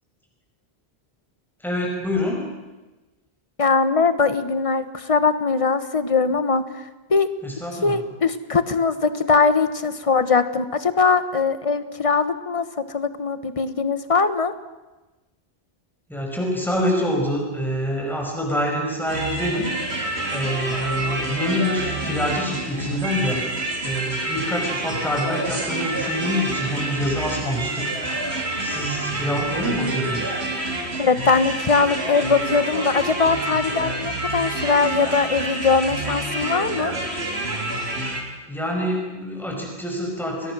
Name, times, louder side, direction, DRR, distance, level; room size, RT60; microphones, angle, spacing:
voice 1, 1.6-2.4 7.4-8.0 16.1-19.7 20.3-28.0 28.6-30.3 38.5-40.5, equal, ahead, 0 dB, 5.4 m, -26 dB
voice 2, 3.6-7.3 7.7-14.5 31.0-36.9, left 4 dB, 35° left, 11 dB, 1.3 m, -21 dB
sound 1, 19.1-38.2, right 1 dB, 85° right, 3.9 m, -28 dB
30.0 x 22.5 x 6.2 m, 1.1 s
omnidirectional pair, 1.1 m